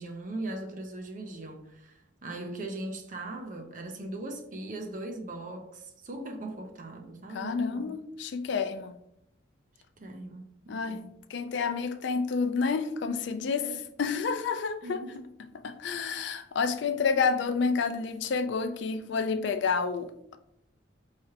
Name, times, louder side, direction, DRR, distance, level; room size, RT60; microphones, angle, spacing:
voice 1, 0.0-7.9 10.0-11.2 13.6-13.8 14.8-15.2, right 2 dB, 40° right, 0.6 m, -39 dB
voice 2, 7.3-8.9 10.7-11.0 11.3-15.0 15.6-20.4, left 5 dB, 65° left, 0.4 m, -29 dB
4.8 x 3.3 x 2.8 m
head